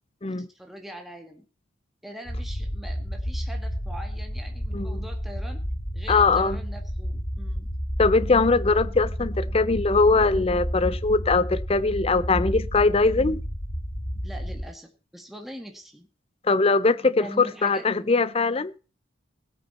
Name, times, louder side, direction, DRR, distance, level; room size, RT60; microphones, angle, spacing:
voice 1, 0.2-1.5 2.0-5.6 5.9-7.7 14.2-16.1 17.2-18.1, right 1 dB, ahead, 1.8 m, -42 dB
sound 1, 2.3-14.6, equal, 50° left, 2.5 m, -31 dB
voice 2, 4.7-5.0 6.1-6.6 8.0-13.4 16.4-18.7, left 3 dB, 30° left, 0.5 m, -21 dB
17.5 x 8.7 x 4.3 m
head